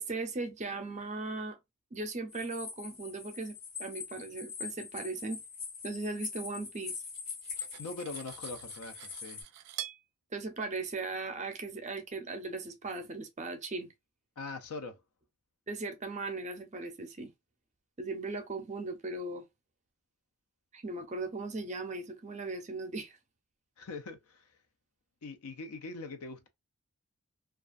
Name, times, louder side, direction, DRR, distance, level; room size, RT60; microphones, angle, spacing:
voice 1, 0.0-1.6 1.9-5.4 5.8-6.9 10.3-13.9 15.7-17.3 18.0-19.4 20.7-23.1, right 3 dB, 30° right, 0.5 m, -38 dB
sound 1, 2.3-9.4, left 5 dB, 45° left, 0.8 m, -43 dB
Cutlery silverware, 6.8-10.0, right 13 dB, 85° right, 0.3 m, -46 dB
voice 2, 7.8-9.4 14.4-15.0 23.8-24.5 25.2-26.5, left 3 dB, 70° left, 0.5 m, -42 dB
2.4 x 2.3 x 2.4 m
head